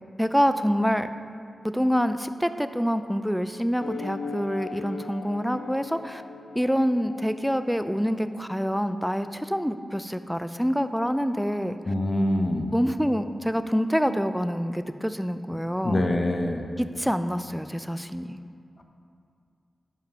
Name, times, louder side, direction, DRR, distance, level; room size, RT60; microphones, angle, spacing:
voice 1, 0.2-1.1 1.6-6.2 6.6-11.7 12.7-16.0 16.8-18.4, equal, ahead, 10 dB, 0.3 m, -26 dB
sound 1, 3.8-8.7, left 4 dB, 80° left, 0.5 m, -40 dB
voice 2, 11.9-12.7 15.8-16.6, left 1 dB, 40° left, 4 dB, 0.7 m, -24 dB
7.7 x 5.1 x 5.6 m, 2.3 s
wide cardioid pair, 95°, 0 cm